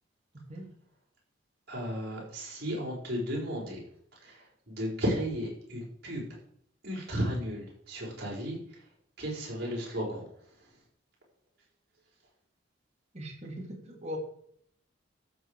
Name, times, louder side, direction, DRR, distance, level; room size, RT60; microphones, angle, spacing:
voice 1, 1.7-3.8 4.2-6.3 6.8-8.8 9.2-10.2, equal, 55° right, -4 dB, 5.6 m, -34 dB
voice 2, 13.1-14.2, equal, 35° right, 0 dB, 3.0 m, -40 dB
15.0 x 7.3 x 4.9 m, 0.66 s
head